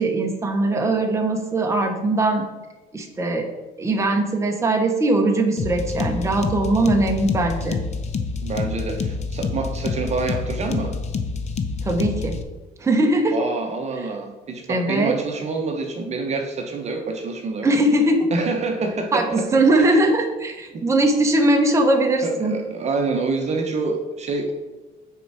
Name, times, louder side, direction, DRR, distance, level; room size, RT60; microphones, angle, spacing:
voice 1, 0.0-2.4 2.9-3.5 3.8-7.8 11.8-12.4 12.8-13.5 14.7-15.2 17.6-18.3 19.1-22.5, right 2 dB, 15° right, 2 dB, 1.0 m, -20 dB
sound 1, 5.6-12.4, left 4 dB, 40° left, 0.7 m, -27 dB
voice 2, 8.4-10.9 13.3-17.7 18.3-19.6 20.7-20.9 22.2-24.5, right 3 dB, 40° right, 3 dB, 0.9 m, -27 dB
6.9 x 4.5 x 4.8 m, 1.2 s
cardioid pair, 110°, 17 cm